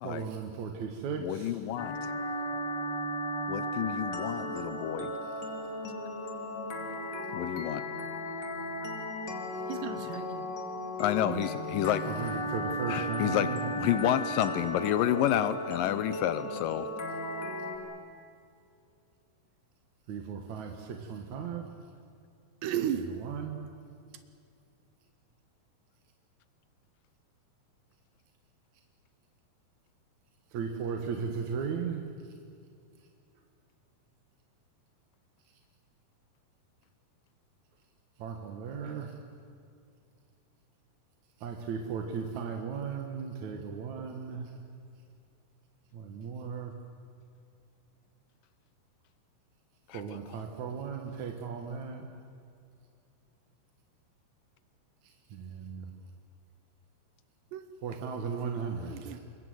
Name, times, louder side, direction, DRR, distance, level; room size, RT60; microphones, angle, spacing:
voice 1, 0.0-1.6 12.0-13.6 20.1-21.7 22.9-23.6 30.5-32.1 38.2-39.1 41.4-44.5 45.9-46.7 49.9-52.1 55.0-55.9 57.8-59.2, right 6 dB, 60° right, 3 dB, 2.3 m, -36 dB
voice 2, 1.2-2.0 3.5-5.1 7.3-7.9 11.0-12.1 12.9-13.5 13.8-16.9 49.9-50.0, left 12 dB, 80° left, 13 dB, 2.0 m, -29 dB
sound 1, 1.8-17.8, equal, 30° left, 2.7 m, -35 dB
voice 3, 9.7-10.5 11.2-11.5 22.6-23.1 57.5-57.6 58.3-58.5 58.8-59.2, right 9 dB, 85° right, 10 dB, 3.1 m, -35 dB
26.5 x 22.0 x 8.0 m, 2.4 s
omnidirectional pair, 4.9 m